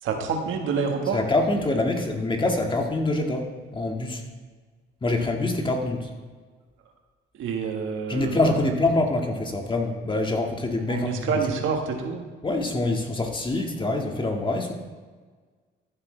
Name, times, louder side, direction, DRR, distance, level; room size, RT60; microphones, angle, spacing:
voice 1, 0.0-1.2 7.3-8.7 10.9-12.3, right 5 dB, 80° right, 3 dB, 1.6 m, -28 dB
voice 2, 1.1-4.2 5.0-6.1 8.1-11.3 12.4-14.7, left 2 dB, 25° left, 2 dB, 1.8 m, -25 dB
14.0 x 8.3 x 3.3 m, 1.4 s
cardioid pair, 90°, 20 cm